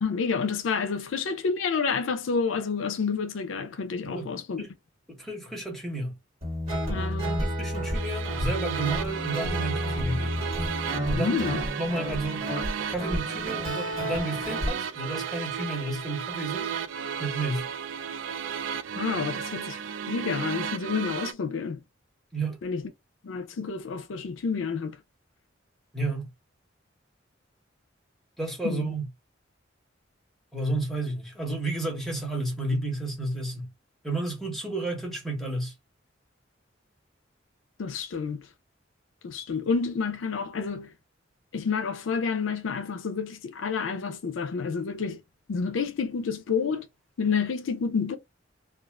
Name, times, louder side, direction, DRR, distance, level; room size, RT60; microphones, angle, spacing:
voice 1, 0.0-4.6 6.9-7.4 11.2-11.6 19.0-19.8 20.1-21.8 22.6-22.8 23.2-25.0 28.6-28.9 37.8-38.4 39.2-40.9 41.5-45.2 45.5-46.9 47.2-48.2, left 5 dB, 80° left, 0.4 m, -29 dB
voice 2, 5.1-6.1 7.4-10.4 11.0-12.4 12.9-16.7 17.2-17.7 22.3-22.6 25.9-26.3 28.4-29.1 30.5-33.7 34.0-35.7, right 2 dB, ahead, 1.0 m, -31 dB
Guitar, 6.4-14.7, equal, 30° right, 1.5 m, -31 dB
sound 1, 7.9-21.3, right 7 dB, 70° right, 0.3 m, -34 dB
2.4 x 2.4 x 3.2 m
head